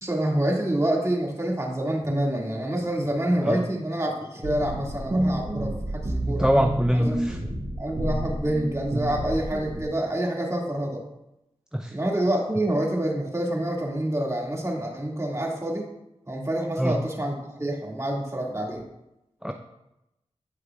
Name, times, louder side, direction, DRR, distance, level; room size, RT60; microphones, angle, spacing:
voice 1, 0.0-6.5 6.9-7.1 7.8-11.0 11.9-15.9 16.3-18.8, right 1 dB, 25° right, -1 dB, 2.1 m, -27 dB
sound 1, 4.4-9.8, right 1 dB, 65° right, 3.0 m, -29 dB
voice 2, 6.2-7.5 11.7-12.0 16.8-17.0 19.4-19.5, equal, 5° right, 5 dB, 0.5 m, -24 dB
14.0 x 4.8 x 2.4 m, 0.89 s
cardioid pair, 40°, 12 cm